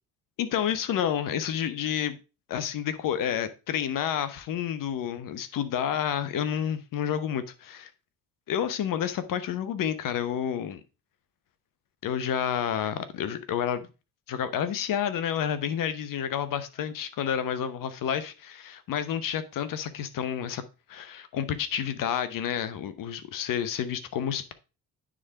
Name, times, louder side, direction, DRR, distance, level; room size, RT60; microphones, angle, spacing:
voice 1, 0.4-2.2 2.5-7.9 8.5-10.8 12.0-13.9 14.3-20.6 20.9-24.5, left 9 dB, 45° left, 1.0 m, -30 dB
9.8 x 3.9 x 4.5 m
figure-of-eight pair, 55°, 46 cm